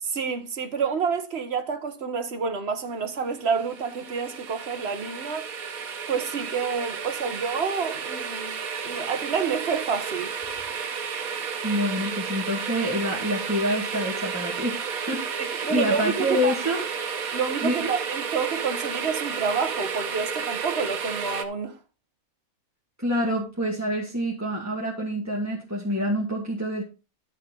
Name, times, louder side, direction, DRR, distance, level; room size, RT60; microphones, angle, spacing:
voice 1, 0.1-5.5 6.1-8.6 8.8-10.3 15.4-16.8 17.3-21.8, right 5 dB, 50° right, 1.5 m, -29 dB
sound 1, 3.4-21.4, right 6 dB, 80° right, 1.5 m, -32 dB
voice 2, 11.6-16.8 17.6-17.9 23.0-26.8, equal, 10° right, 2.1 m, -27 dB
11.0 x 7.5 x 3.9 m
omnidirectional pair, 1.5 m